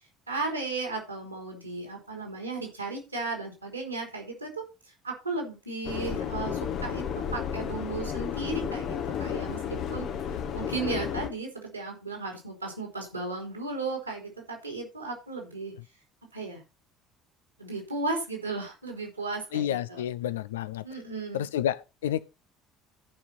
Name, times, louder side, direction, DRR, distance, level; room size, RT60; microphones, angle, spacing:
voice 1, 0.3-4.6 5.0-7.0 7.3-10.1 10.5-15.7 16.3-16.6 17.6-20.0 20.8-21.5, right 3 dB, 90° right, 3.3 m, -35 dB
Subway metro underground, 5.8-11.3, left 8 dB, 50° left, 1.2 m, -32 dB
voice 2, 19.5-20.8 21.3-22.2, left 11 dB, 70° left, 0.6 m, -30 dB
14.5 x 5.6 x 4.3 m
figure-of-eight pair, 60°, 0 cm